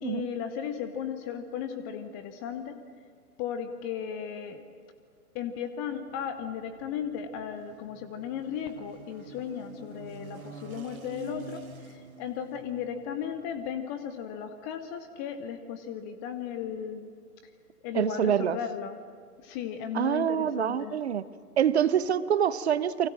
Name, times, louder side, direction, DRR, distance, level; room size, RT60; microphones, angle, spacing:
voice 1, 0.0-2.8 3.4-4.6 5.3-17.1 17.4-17.5 17.8-19.0 19.4-21.0, left 8 dB, 15° left, 10 dB, 0.6 m, -36 dB
sound 1, 6.1-13.7, right 4 dB, 65° right, 2.3 m, -48 dB
voice 2, 17.9-18.6 19.9-21.2 21.6-23.1, right 9 dB, 45° right, 16 dB, 1.0 m, -26 dB
30.0 x 24.0 x 7.6 m, 2.1 s
figure-of-eight pair, 120°, 46 cm